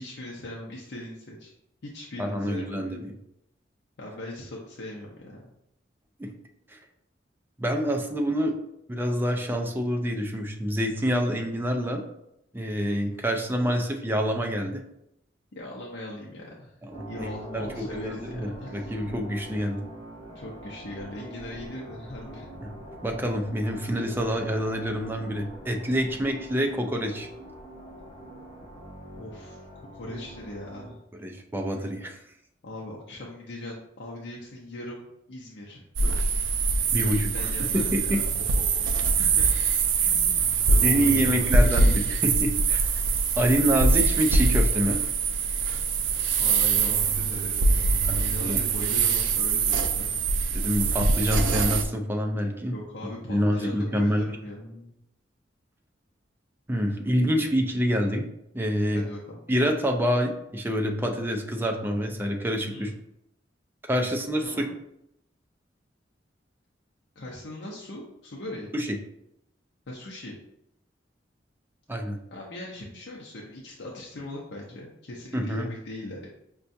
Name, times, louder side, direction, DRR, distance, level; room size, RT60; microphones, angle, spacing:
voice 1, 0.0-1.5 1.8-3.1 4.0-5.5 15.6-16.8 17.1-18.9 20.3-22.5 29.2-31.0 32.6-36.5 37.0-39.5 39.9-41.9 46.4-50.2 52.7-55.0 58.9-59.4 62.7-62.9 64.4-64.7 67.2-68.7 69.9-70.4 72.3-76.3, left 1 dB, 65° left, -4 dB, 0.6 m, -40 dB
voice 2, 2.2-3.1 6.2-6.3 6.7-6.8 7.6-8.6 8.9-12.0 12.5-14.8 16.8-19.8 22.6-22.7 23.0-27.3 31.2-32.2 36.9-38.2 40.8-42.9 43.4-45.0 48.1-48.6 50.5-52.7 53.3-54.3 56.7-58.3 58.5-59.0 59.5-62.9 63.9-64.6 68.7-69.0 71.9-72.2 75.3-75.7, equal, 10° right, 3 dB, 0.4 m, -27 dB
sound 1, 16.9-30.9, right 1 dB, 25° left, 1.0 m, -44 dB
sound 2, 36.0-51.8, right 4 dB, 85° right, 0.4 m, -23 dB
5.4 x 2.3 x 2.6 m, 0.80 s
head